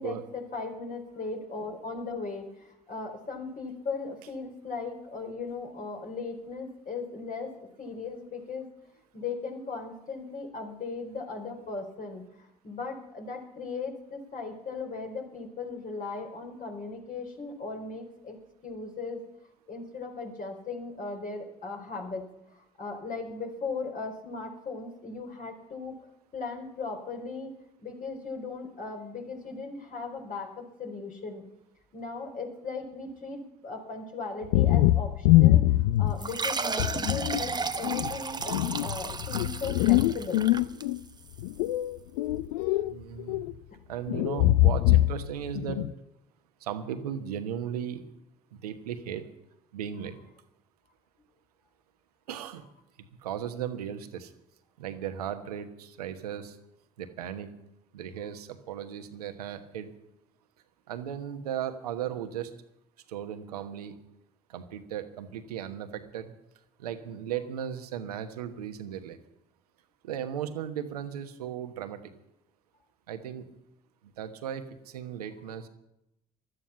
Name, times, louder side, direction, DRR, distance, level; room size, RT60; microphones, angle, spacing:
voice 1, 0.0-8.7 9.1-18.4 18.6-19.2 19.7-26.0 26.3-27.6 27.8-31.5 31.9-35.7 36.0-40.5 43.7-43.8, left 4 dB, 45° left, 2 dB, 4.5 m, -38 dB
sound 1, 34.4-36.3 36.8-37.4 37.8-41.0 41.4-42.9 43.2-43.5 44.1-45.3 45.6-45.9, left 15 dB, 75° left, 0.5 m, -23 dB
sound 2, 36.2-41.3, right 4 dB, 20° right, 1.1 m, -34 dB
voice 2, 42.9-43.4 43.9-45.8 46.6-48.0 48.5-49.2 49.7-50.1 52.3-52.6 53.2-54.3 54.8-56.6 57.0-57.5 57.9-59.9 60.9-62.5 63.1-63.9 64.5-66.3 66.8-69.2 70.0-72.0 73.1-73.4 74.2-74.6 74.9-75.7, right 9 dB, 85° right, 8 dB, 1.2 m, -36 dB
16.0 x 13.0 x 5.8 m, 0.85 s
hypercardioid pair, 55°, 19 cm